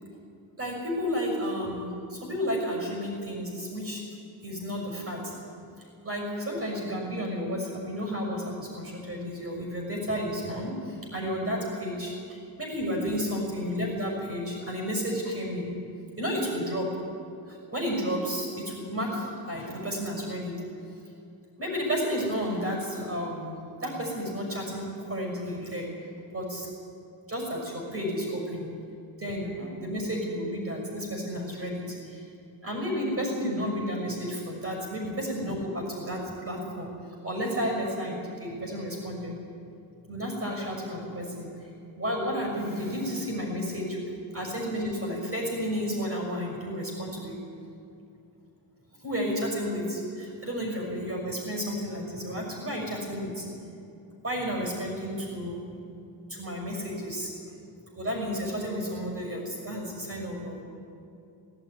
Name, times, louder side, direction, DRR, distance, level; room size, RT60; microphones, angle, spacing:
voice 1, 0.6-4.2 4.4-5.4 6.0-15.7 16.2-16.9 17.5-20.5 21.6-25.9 26.3-26.7 27.3-28.7 29.2-32.2 32.6-36.9 37.2-39.3 40.1-41.7 42.0-44.0 44.3-47.4 49.0-53.4 54.2-55.6 56.3-57.3 58.0-60.6, equal, 30° right, -1 dB, 6.1 m, -32 dB
18.5 x 16.5 x 9.6 m, 2.6 s
wide cardioid pair, 170°, 46 cm